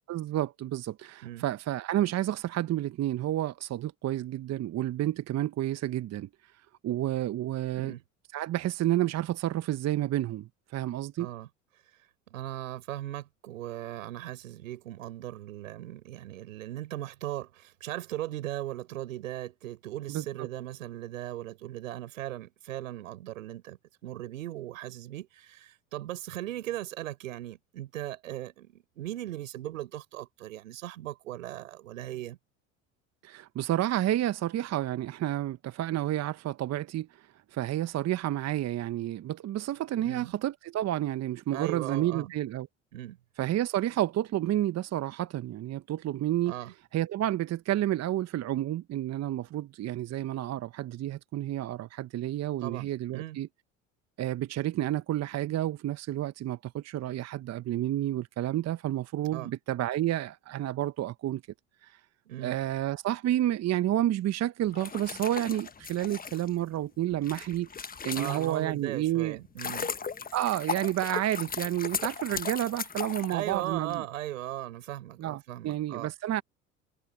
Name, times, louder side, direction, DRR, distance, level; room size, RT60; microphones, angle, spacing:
voice 1, 0.1-7.9 8.3-11.3 20.1-20.5 33.2-42.7 43.4-46.5 46.9-53.5 54.2-61.4 61.8-62.0 62.4-69.4 70.3-74.1 75.2-76.4, right 13 dB, 40° right, 1.1 m, -30 dB
voice 2, 11.2-11.5 12.3-32.4 40.0-40.3 41.5-42.3 42.9-43.2 46.5-46.7 52.6-53.4 59.3-59.5 62.3-62.6 68.1-69.9 73.3-76.1, right 14 dB, 80° right, 7.2 m, -38 dB
sound 1, 64.7-68.8 69.3-74.0, left 6 dB, 20° left, 1.3 m, -37 dB
hypercardioid pair, 70°, 40 cm